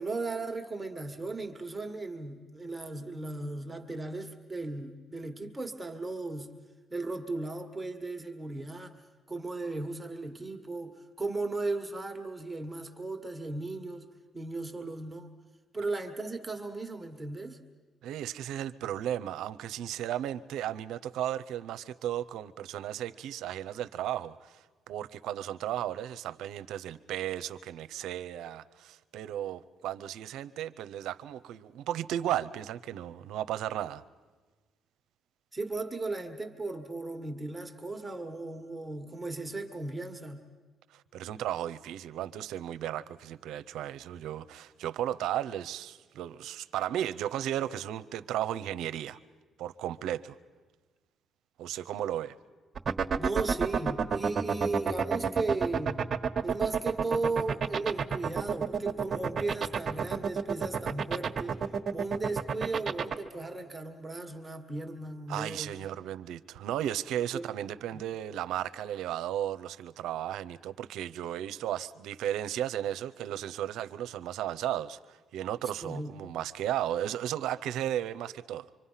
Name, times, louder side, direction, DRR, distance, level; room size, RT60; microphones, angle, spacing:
voice 1, 0.0-6.5 6.9-9.0 9.3-14.1 14.3-15.3 15.7-17.6 35.5-40.4 53.2-56.0 56.4-61.6 61.9-65.7 67.3-67.5 67.9-68.0 75.8-76.3, right 3 dB, 15° right, 4 dB, 1.6 m, -36 dB
voice 2, 18.0-34.0 40.9-49.2 49.6-50.4 51.6-52.4 65.3-78.7, right 11 dB, 85° right, 14 dB, 0.6 m, -35 dB
sound 1, 52.8-63.1, right 6 dB, 45° right, 1.3 m, -28 dB
25.0 x 25.0 x 5.7 m, 1.3 s
cardioid pair, 90°, 0 cm